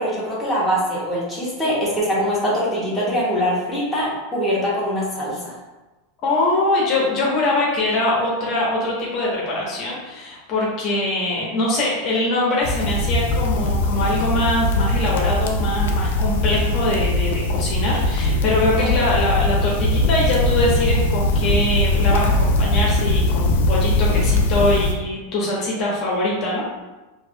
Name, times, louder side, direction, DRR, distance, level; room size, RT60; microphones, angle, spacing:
voice 1, 0.0-5.6, equal, ahead, -10 dB, 1.3 m, -23 dB
voice 2, 6.2-26.6, left 2 dB, 45° left, -5 dB, 1.2 m, -23 dB
sound 1, 12.6-24.9, left 1 dB, 75° left, 0.5 m, -20 dB
4.6 x 2.7 x 2.3 m, 1.1 s
supercardioid pair, 125°, 0 cm